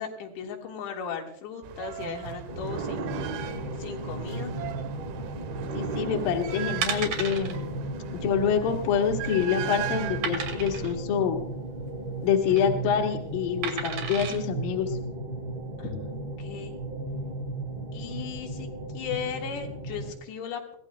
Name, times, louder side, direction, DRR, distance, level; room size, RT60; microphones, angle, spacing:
voice 1, 0.0-3.2 3.8-4.5 15.8-16.8 17.9-18.7 18.9-20.8, left 7 dB, 85° left, 1 dB, 4.0 m, -37 dB
sound 1, 1.6-10.9, right 9 dB, 75° right, 2.5 m, -37 dB
sound 2, 2.5-20.1, right 2 dB, 35° right, 2.3 m, -35 dB
voice 2, 5.7-7.8 8.1-11.4 12.2-15.0, left 8 dB, 65° left, 1 dB, 2.7 m, -26 dB
sound 3, 6.2-6.3 6.8-7.5 7.9-8.1 8.3-8.4 9.0-9.5 10.2-10.9 12.2-12.6 13.6-14.4 15.0-15.1, right 6 dB, 60° right, 3.0 m, -33 dB
23.5 x 17.0 x 2.2 m, 0.69 s
omnidirectional pair, 4.9 m